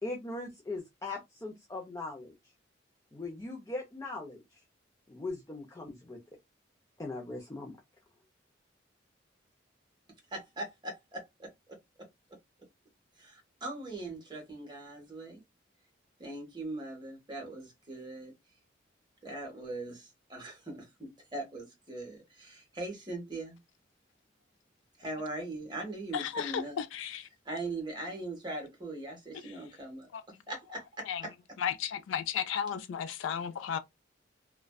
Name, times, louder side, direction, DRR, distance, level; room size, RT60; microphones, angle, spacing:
voice 1, 0.0-2.3 3.1-4.6 5.1-6.2 7.0-7.8, left 2 dB, 15° left, 0.5 m, -40 dB
voice 2, 10.3-11.5 13.2-15.4 16.2-18.3 19.2-23.6 25.0-26.8 27.4-30.1 30.5-31.3, right 2 dB, 25° right, 1.0 m, -40 dB
voice 3, 26.1-27.3 30.1-30.2 31.1-31.2 31.6-33.8, left 8 dB, 80° left, 0.3 m, -34 dB
2.5 x 2.2 x 2.2 m
head